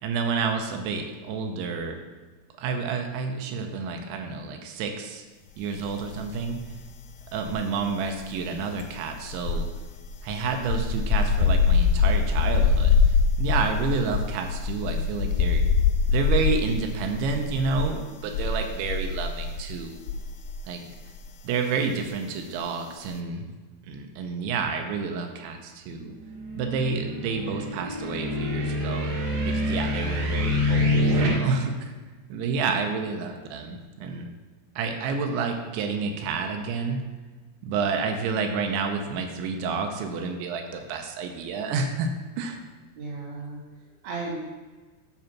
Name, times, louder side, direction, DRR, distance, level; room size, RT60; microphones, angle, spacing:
voice 1, 0.0-2.0 2.6-5.2 5.6-6.6 7.3-9.7 10.2-15.6 16.1-20.0 20.7-20.8 21.4-23.5 23.9-26.1 26.6-31.9 32.3-34.3 34.8-37.0 37.6-42.1 42.4-42.6, right 5 dB, 85° right, 4 dB, 3.2 m, -29 dB
sound 1, 6.0-6.9 7.1-20.6 20.9-21.2, left 5 dB, 90° left, 3.0 m, -24 dB
sound 2, 26.3-31.3, left 1 dB, 60° right, 2.4 m, -26 dB
voice 2, 43.0-44.3, right 3 dB, 35° right, -3 dB, 2.5 m, -36 dB
9.4 x 5.0 x 5.9 m, 1.3 s
omnidirectional pair, 5.2 m